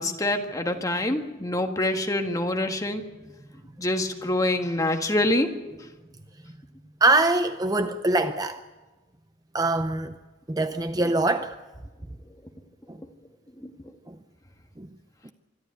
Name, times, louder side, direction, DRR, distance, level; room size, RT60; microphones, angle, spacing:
voice 1, 0.0-3.0 3.8-5.5 13.6-13.7, left 1 dB, 20° left, 1.6 m, -25 dB
voice 2, 7.0-8.6 9.5-10.1 10.5-11.6 12.9-13.0 14.1-14.2 14.8-14.9 15.2-15.3, right 2 dB, 20° right, 0.6 m, -23 dB
25.0 x 12.5 x 9.8 m
head